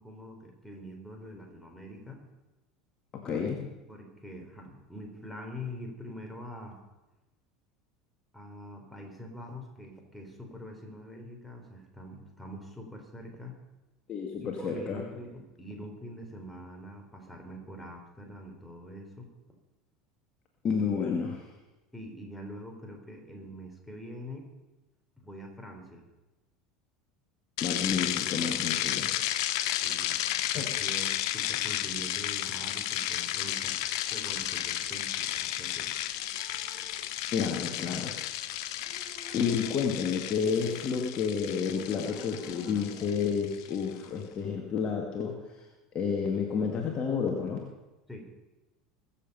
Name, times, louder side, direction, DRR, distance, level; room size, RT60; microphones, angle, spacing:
voice 1, 0.0-2.2 3.9-6.8 8.3-13.6 14.4-19.3 21.9-24.5 25.2-26.1 29.8-30.2 30.6-33.8 34.1-35.9 48.1-48.3, equal, ahead, 0 dB, 3.9 m, -44 dB
voice 2, 3.2-3.7 14.1-15.0 20.6-21.4 27.6-29.1 30.5-30.6 37.3-38.2 39.3-45.4 45.9-47.6, left 6 dB, 35° left, 1 dB, 1.9 m, -30 dB
sound 1, 27.6-43.9, left 13 dB, 55° left, 0.7 m, -33 dB
sound 2, 32.8-40.9 41.2-44.9, right 2 dB, 30° right, 5.2 m, -53 dB
22.0 x 7.4 x 5.6 m, 1.1 s
figure-of-eight pair, 75°, 3 cm